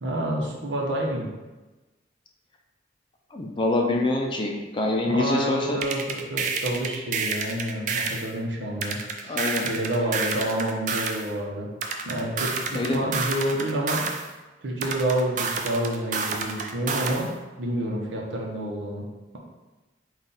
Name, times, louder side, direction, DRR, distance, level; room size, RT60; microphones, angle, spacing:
voice 1, 0.0-1.3 5.1-11.7 12.1-14.0 14.6-17.3 17.6-19.0, right 1 dB, 85° right, -2 dB, 0.9 m, -28 dB
voice 2, 3.3-5.8 9.2-9.6 12.7-13.0, left 2 dB, 25° left, 1 dB, 0.4 m, -25 dB
sound 1, 5.8-8.3 8.8-11.3 11.8-14.3 14.8-17.3, right 4 dB, 45° right, 0.3 m, -29 dB
4.1 x 2.4 x 3.9 m, 1.1 s
head